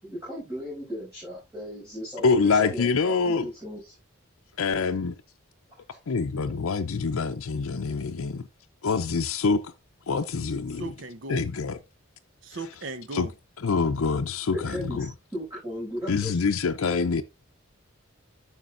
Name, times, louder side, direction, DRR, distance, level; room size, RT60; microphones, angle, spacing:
voice 1, 0.0-3.9 5.9-6.0 14.5-16.4, equal, 15° right, 6.3 m, -36 dB
voice 2, 2.2-3.5 4.6-5.1 6.1-8.5 8.8-9.7 10.1-10.9 11.3-11.8 13.1-13.3 13.6-15.1 16.1-17.2, left 4 dB, 85° left, 0.6 m, -25 dB
voice 3, 10.8-11.5 12.4-13.3, right 2 dB, 60° right, 0.8 m, -37 dB
11.5 x 6.1 x 2.5 m
head